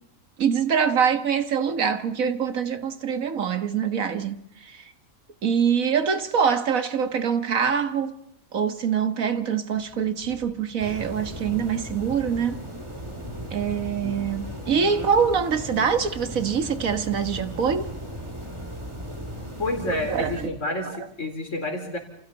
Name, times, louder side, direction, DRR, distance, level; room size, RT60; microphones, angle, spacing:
voice 1, 0.4-4.9 5.4-8.2 8.5-12.6 13.5-17.9 20.1-20.5, right 7 dB, 75° right, 1.9 m, -24 dB
Wind, 9.7-15.3, left 1 dB, 30° left, 5.1 m, -49 dB
sound 1, 10.8-20.5, equal, 20° right, 3.1 m, -36 dB
voice 2, 19.6-22.0, left 1 dB, 60° left, 4.5 m, -29 dB
29.5 x 29.0 x 4.2 m
omnidirectional pair, 1.5 m